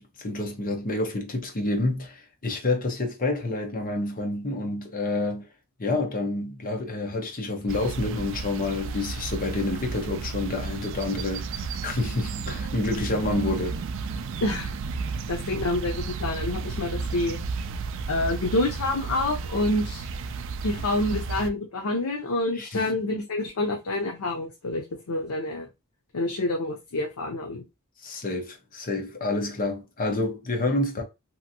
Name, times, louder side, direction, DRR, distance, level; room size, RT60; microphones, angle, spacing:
voice 1, 0.0-5.5 5.8-14.1 15.0-15.1 22.5-22.9 28.0-31.0, left 2 dB, 40° left, 0.8 m, -28 dB
sound 1, 7.7-21.5, right 4 dB, 60° right, 0.3 m, -33 dB
voice 2, 15.3-17.4 18.1-20.1 20.6-25.7 26.1-27.6, left 2 dB, 85° left, 0.6 m, -27 dB
2.8 x 2.5 x 2.7 m
head